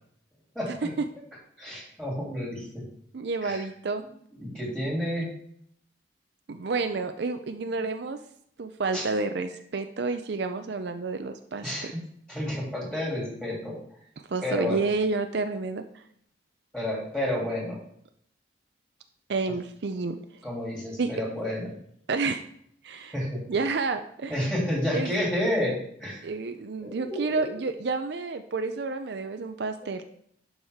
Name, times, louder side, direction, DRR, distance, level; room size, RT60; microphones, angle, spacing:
voice 1, 0.5-0.9 1.6-2.9 3.4-3.6 4.4-5.3 8.9-9.1 11.6-12.0 12.3-13.8 14.4-14.8 16.7-17.8 20.4-21.7 23.1-23.4 24.3-26.2 26.8-27.5, left 1 dB, 5° left, -4 dB, 3.0 m, -30 dB
voice 2, 3.1-4.0 6.5-8.2 8.6-11.9 14.3-15.8 19.3-20.2 21.0-21.1 22.1-22.4 22.8-23.1 23.5-24.5 24.9-25.1 26.2-30.0, right 3 dB, 60° right, 8 dB, 0.5 m, -30 dB
11.0 x 4.9 x 3.6 m, 0.68 s
head